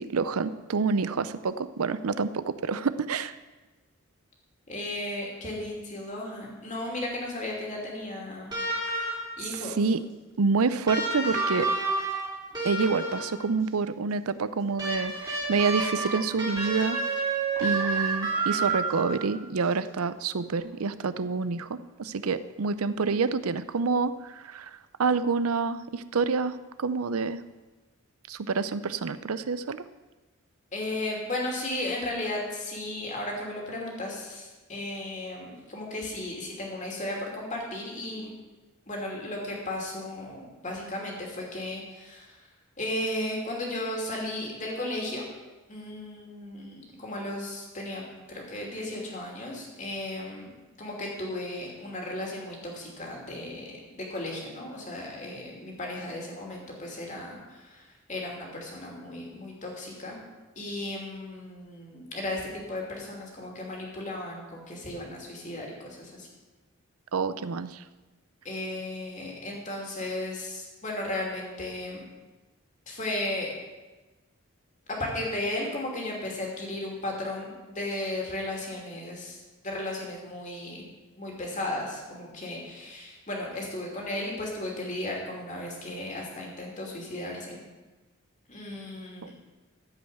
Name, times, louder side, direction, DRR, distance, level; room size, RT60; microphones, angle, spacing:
voice 1, 0.0-3.4 9.8-10.0 10.4-11.7 12.6-17.3 17.6-27.4 28.3-29.8 67.1-67.8 89.2-89.3, right 4 dB, 85° right, 14 dB, 0.6 m, -28 dB
voice 2, 4.7-8.5 9.4-9.8 30.7-38.3 38.9-42.4 42.8-45.3 45.7-50.5 50.8-60.2 60.6-66.3 68.4-72.0 72.9-73.5 74.9-79.4 79.6-80.9 81.2-87.6 88.5-89.3, left 1 dB, 35° left, -1 dB, 2.8 m, -35 dB
sound 1, 8.5-9.5 10.9-13.4 14.8-19.2 20.6-20.7, right 3 dB, 20° right, 3.2 m, -29 dB
14.5 x 5.6 x 7.8 m, 1.2 s
head